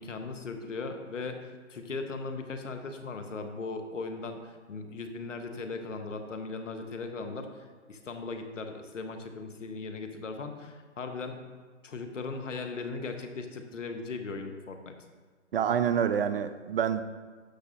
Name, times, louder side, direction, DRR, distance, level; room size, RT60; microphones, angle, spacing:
voice 1, 0.0-11.4 11.8-15.0, left 3 dB, 85° left, 6 dB, 1.1 m, -38 dB
voice 2, 15.5-17.0, right 8 dB, 50° right, 11 dB, 0.6 m, -27 dB
11.5 x 6.6 x 2.6 m, 1.4 s
hypercardioid pair, 140°, 37 cm